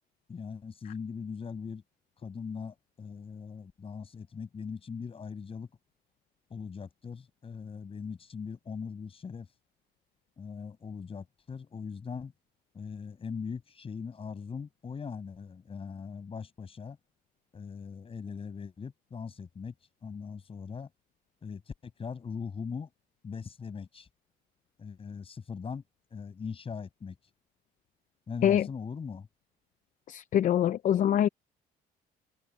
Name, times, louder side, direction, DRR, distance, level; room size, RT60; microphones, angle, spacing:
voice 1, 0.3-1.8 2.2-5.7 6.5-9.5 10.4-12.3 12.7-17.0 17.5-19.7 20.0-20.9 21.4-22.9 23.2-24.1 24.8-25.8 26.1-27.2 28.3-29.3, left 5 dB, 35° left, 7.8 m, -40 dB
voice 2, 30.1-31.3, left 10 dB, 50° left, 0.6 m, -24 dB
cardioid pair, 110°, 17 cm